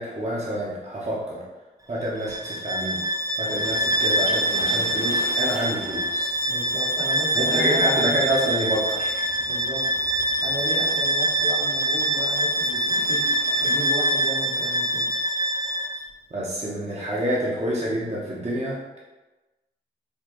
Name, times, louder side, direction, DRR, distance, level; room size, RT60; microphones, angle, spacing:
voice 1, 0.0-1.4 1.9-3.0 3.4-6.3 7.3-9.3 16.3-19.0, right 1 dB, 35° right, -5 dB, 0.8 m, -28 dB
Bowed string instrument, 2.2-16.1, right 1 dB, 20° right, 0.4 m, -24 dB
sound 1, 3.6-13.9, right 1 dB, 85° right, 0.9 m, -44 dB
voice 2, 6.5-8.1 9.5-9.8 10.4-13.2 13.6-15.1, right 1 dB, 65° right, -5 dB, 1.2 m, -34 dB
4.3 x 2.3 x 3.0 m, 1.1 s
cardioid pair, 45°, 19 cm